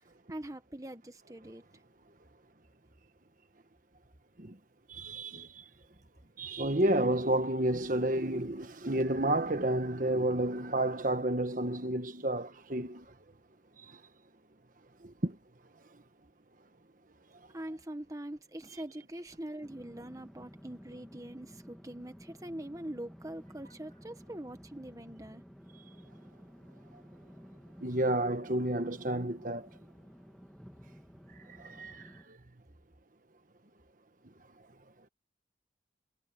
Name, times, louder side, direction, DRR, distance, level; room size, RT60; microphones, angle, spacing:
voice 1, 0.3-1.6 17.5-25.4, right 1 dB, 20° right, 1.3 m, -43 dB
voice 2, 4.9-5.7 6.4-13.1 13.8-14.0 15.0-15.4 15.9-16.0 26.9-27.0 27.8-29.7 31.4-32.4, right 1 dB, 45° right, 1.4 m, -31 dB
sound 1, 19.6-32.3, equal, ahead, 2.6 m, -53 dB
head